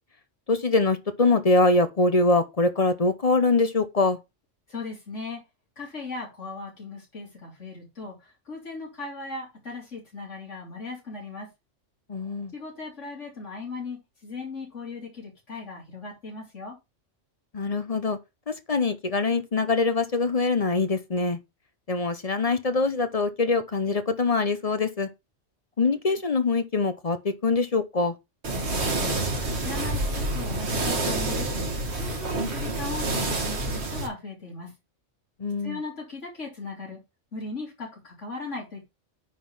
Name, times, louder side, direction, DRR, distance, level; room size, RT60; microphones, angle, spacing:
voice 1, 0.5-4.2 12.1-12.5 17.5-18.2 18.5-21.4 21.9-25.1 25.8-28.1 35.4-35.8, left 3 dB, 35° left, 0.7 m, -23 dB
voice 2, 4.7-5.4 5.8-11.5 12.5-16.8 28.5-29.3 29.6-34.7 35.6-37.0 37.3-38.8, left 3 dB, 75° left, 3.5 m, -38 dB
sound 1, 28.4-34.1, right 2 dB, 60° right, 1.9 m, -28 dB
9.5 x 3.8 x 5.5 m
omnidirectional pair, 1.2 m